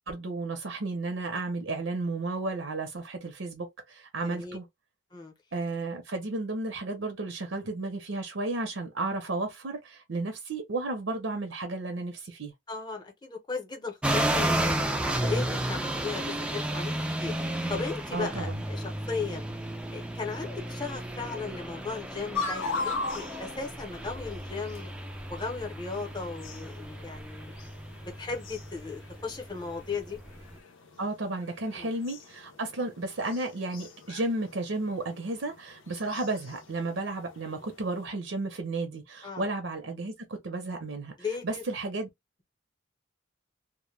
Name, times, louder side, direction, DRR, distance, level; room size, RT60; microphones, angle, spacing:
voice 1, 0.1-4.6 5.5-12.5 18.1-18.6 31.0-41.1 41.4-42.1, right 2 dB, 75° right, 0.6 m, -33 dB
voice 2, 4.2-4.6 5.1-5.3 12.7-16.9 17.2-17.3 17.7-19.4 19.9-24.9 25.3-27.5 28.0-30.2 31.7-31.9 39.2-39.5 41.2-41.6, left 4 dB, 20° left, 0.7 m, -36 dB
sound 1, 14.0-30.5, right 1 dB, 5° right, 0.3 m, -33 dB
sound 2, 22.3-38.1, left 3 dB, 85° left, 0.6 m, -41 dB
2.2 x 2.1 x 3.1 m
head